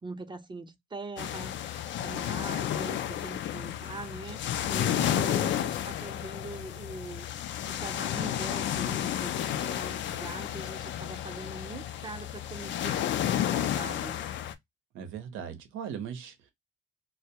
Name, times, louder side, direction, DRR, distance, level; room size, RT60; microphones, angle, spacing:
voice 1, 0.0-4.4 4.7-7.3 7.7-14.2, right 3 dB, 25° right, 0.5 m, -42 dB
sound 1, 1.2-14.5, left 11 dB, 70° left, 0.4 m, -32 dB
voice 2, 4.9-5.3 14.9-16.5, right 8 dB, 90° right, 0.7 m, -39 dB
2.2 x 2.1 x 2.7 m
cardioid pair, 90°, 20 cm